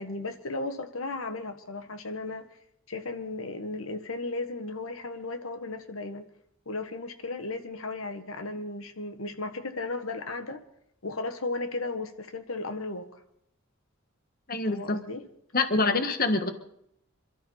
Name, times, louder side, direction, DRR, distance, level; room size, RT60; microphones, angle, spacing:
voice 1, 0.0-2.5 2.9-6.3 6.6-10.6 11.0-13.1 14.6-15.2, left 3 dB, 85° left, 1.6 m, -35 dB
voice 2, 14.5-15.0 15.5-16.5, left 3 dB, 45° left, 1.5 m, -25 dB
27.0 x 13.0 x 4.0 m
head